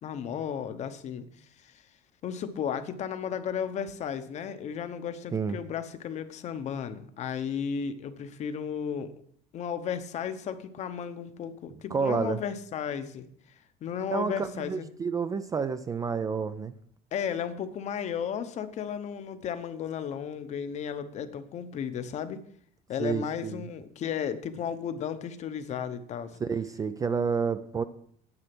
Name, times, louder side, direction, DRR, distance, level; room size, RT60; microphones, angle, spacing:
voice 1, 0.0-1.3 1.6-1.8 2.2-9.1 9.5-13.3 13.8-14.9 17.1-22.4 22.9-26.4, left 8 dB, 40° left, 11 dB, 0.9 m, -34 dB
voice 2, 11.9-12.4 14.1-16.7 23.0-23.6 26.4-27.8, right 5 dB, 20° right, 11 dB, 0.4 m, -29 dB
9.8 x 8.1 x 6.0 m, 0.62 s
cardioid pair, 160°, 18 cm